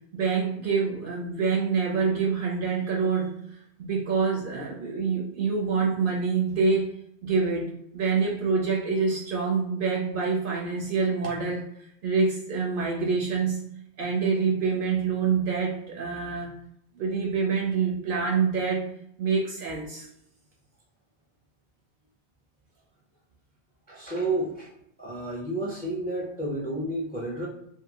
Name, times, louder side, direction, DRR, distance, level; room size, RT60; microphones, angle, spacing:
voice 1, 0.1-3.3 3.8-6.9 7.2-11.6 12.0-13.6 14.0-16.5 17.0-18.8 19.2-20.1, right 5 dB, 60° right, -1 dB, 0.6 m, -26 dB
voice 2, 23.9-24.7 25.0-27.5, right 2 dB, 10° left, -3 dB, 0.5 m, -31 dB
2.5 x 2.4 x 2.8 m, 0.75 s
omnidirectional pair, 1.1 m